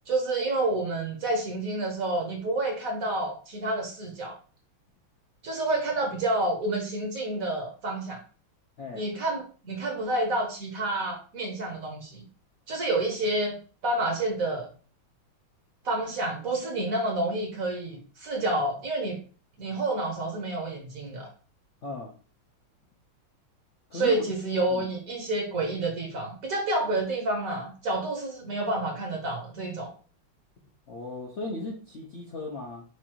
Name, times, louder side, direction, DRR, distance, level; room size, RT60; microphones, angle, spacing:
voice 1, 0.1-4.4 5.4-8.2 8.9-12.2 12.7-13.6 13.8-14.7 15.8-19.2 19.6-21.3 23.9-29.9, right 2 dB, 50° right, 1 dB, 1.3 m, -29 dB
voice 2, 21.8-22.1 23.9-24.3 24.7-24.9 30.9-32.8, left 3 dB, 55° left, -2 dB, 0.8 m, -36 dB
6.2 x 2.6 x 2.9 m, 0.38 s
omnidirectional pair, 2.1 m